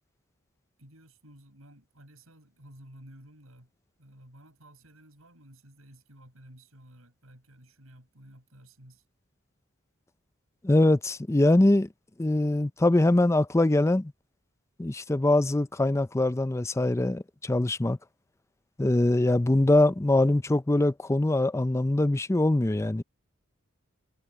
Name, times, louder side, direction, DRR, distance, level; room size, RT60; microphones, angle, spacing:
voice 1, 0.8-3.7 4.0-9.0, right 1 dB, 90° right, 7.7 m, -53 dB
voice 2, 10.6-11.9 12.2-14.1 14.8-18.0 18.8-23.0, left 1 dB, 15° left, 0.5 m, -23 dB
head